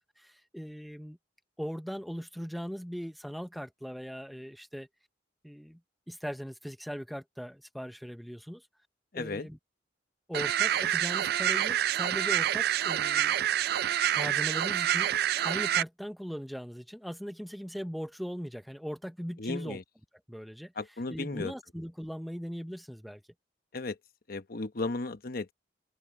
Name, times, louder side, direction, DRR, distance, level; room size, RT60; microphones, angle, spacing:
voice 1, 0.2-1.2 1.6-4.9 5.4-5.8 6.1-8.7 9.1-9.6 10.3-13.4 14.1-15.1 15.4-19.8 20.3-20.7 21.1-23.2, equal, ahead, 0.6 m, -39 dB
voice 2, 9.1-9.5 19.4-19.8 20.8-21.5 23.7-24.0 24.3-25.5, left 3 dB, 55° left, 1.1 m, -35 dB
sound 1, 10.3-15.8, right 11 dB, 60° right, 0.3 m, -27 dB
open air
head